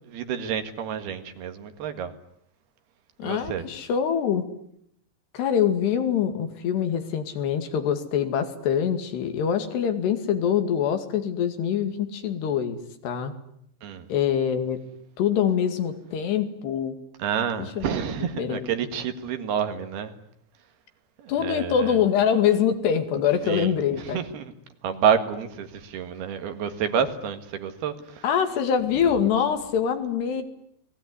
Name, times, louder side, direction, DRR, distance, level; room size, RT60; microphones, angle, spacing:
voice 1, 0.0-2.1 3.2-3.7 13.8-14.1 17.2-20.2 21.2-22.0 23.4-24.5 24.8-28.2, right 8 dB, 70° right, 8 dB, 3.7 m, -29 dB
voice 2, 3.2-4.4 5.3-13.3 14.1-14.8 15.2-17.0 17.6-17.9 18.4-18.7 21.3-24.2 28.2-30.4, left 8 dB, 80° left, 8 dB, 4.3 m, -24 dB
29.5 x 20.5 x 9.8 m, 0.72 s
omnidirectional pair, 4.8 m